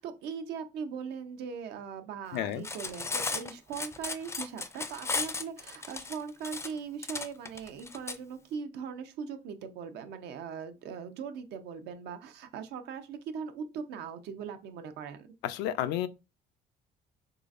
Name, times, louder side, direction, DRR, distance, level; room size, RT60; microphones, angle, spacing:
voice 1, 0.0-15.3, right 6 dB, 80° right, 0.6 m, -40 dB
voice 2, 2.3-2.6 15.4-16.1, left 12 dB, 90° left, 0.4 m, -31 dB
Cutlery silverware, 2.5-8.2, left 3 dB, 15° left, 0.4 m, -35 dB
3.8 x 3.1 x 2.5 m
cardioid pair, 110°, 17 cm